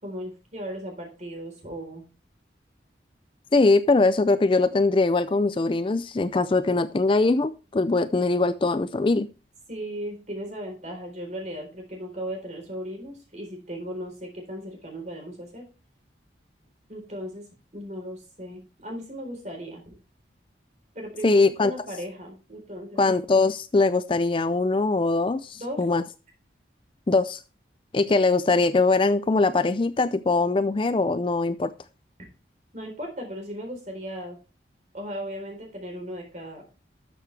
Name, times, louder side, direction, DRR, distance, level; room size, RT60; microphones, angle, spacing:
voice 1, 0.0-2.0 9.7-15.6 16.9-17.4 17.7-19.8 20.9-23.0 25.5-25.8 32.7-34.4 34.9-36.6, equal, 40° right, 4.0 m, -36 dB
voice 2, 3.5-9.3 21.2-21.7 23.0-26.0 27.1-27.4 27.9-31.7, left 3 dB, 25° left, 0.4 m, -22 dB
12.5 x 6.8 x 3.3 m
head